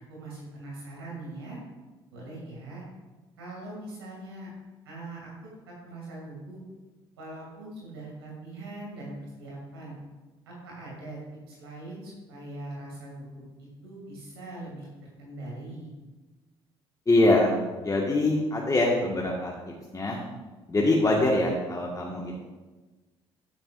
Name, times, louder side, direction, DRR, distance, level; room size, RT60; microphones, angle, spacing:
voice 1, 0.1-1.6 2.1-2.8 3.4-4.5 4.8-5.3 5.7-6.6 7.2-9.9 10.5-11.2 11.5-14.9 15.2-15.9, right 2 dB, 90° right, -4 dB, 2.5 m, -41 dB
voice 2, 17.1-20.2 20.7-22.4, left 2 dB, 25° left, -2 dB, 1.6 m, -24 dB
10.5 x 9.6 x 2.6 m, 1.2 s
hypercardioid pair, 55°, 13 cm